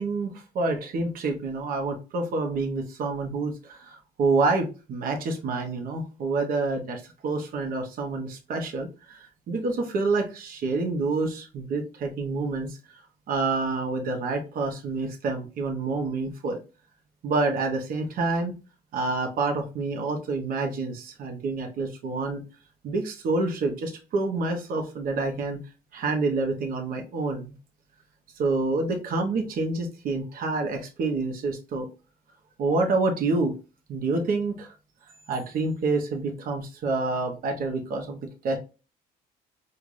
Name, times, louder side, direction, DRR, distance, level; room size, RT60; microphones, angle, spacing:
voice 1, 0.0-12.8 13.3-16.6 17.2-18.5 18.9-22.4 22.8-25.6 25.9-27.5 28.4-31.9 32.6-33.5 33.9-34.7 35.3-38.6, right 3 dB, 60° right, 3 dB, 0.8 m, -28 dB
4.7 x 2.5 x 2.5 m, 0.32 s
cardioid pair, 110°, 17 cm